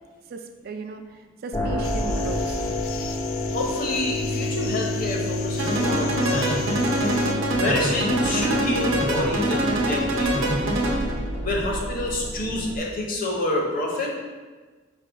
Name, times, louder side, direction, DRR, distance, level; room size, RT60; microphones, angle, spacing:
voice 1, 0.3-2.6, right 4 dB, 50° right, 5 dB, 0.3 m, -36 dB
sound 1, 1.5-12.8, left 1 dB, 20° left, 0.4 m, -29 dB
sound 2, 1.8-7.3, left 7 dB, 85° left, 0.4 m, -38 dB
voice 2, 3.5-6.8 7.6-10.7 11.4-14.1, left 1 dB, 45° left, -1 dB, 0.8 m, -28 dB
sound 3, 5.6-11.2, right 1 dB, 80° right, 0.8 m, -24 dB
5.1 x 2.2 x 4.7 m, 1.3 s
head